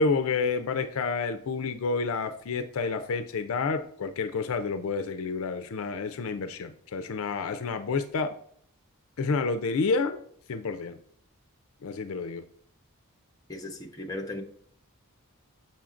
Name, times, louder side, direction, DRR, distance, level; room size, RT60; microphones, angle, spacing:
voice 1, 0.0-8.4 9.2-10.2 10.5-11.0 11.8-12.4, left 4 dB, 65° left, 9 dB, 0.4 m, -29 dB
voice 2, 13.5-14.4, left 1 dB, 15° left, 3 dB, 0.8 m, -36 dB
7.1 x 5.5 x 2.5 m, 0.64 s
head